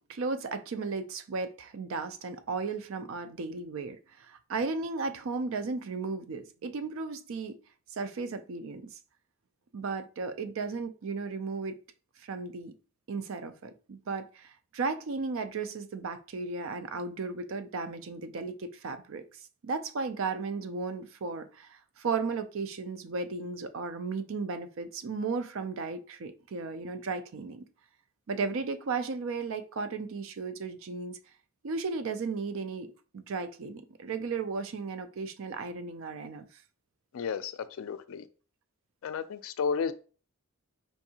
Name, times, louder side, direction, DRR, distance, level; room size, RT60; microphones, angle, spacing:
voice 1, 0.1-7.6 7.9-9.0 9.7-11.8 12.2-12.7 13.1-19.3 19.6-27.6 28.3-31.2 31.6-36.5, right 4 dB, 60° right, 0.4 m, -35 dB
voice 2, 37.1-38.3 39.0-39.9, left 6 dB, 65° left, 0.3 m, -32 dB
4.6 x 2.6 x 2.7 m
head